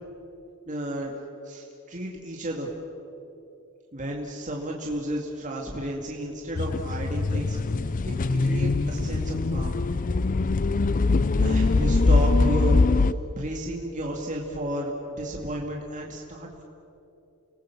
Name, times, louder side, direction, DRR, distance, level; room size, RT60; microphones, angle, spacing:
voice 1, 0.7-2.7 3.9-7.6 7.8-9.8 11.4-16.6, right 1 dB, 35° right, -1 dB, 2.2 m, -33 dB
sound 1, 6.6-13.1, left 3 dB, 40° left, 0.6 m, -22 dB
30.0 x 20.0 x 7.2 m, 2.9 s
head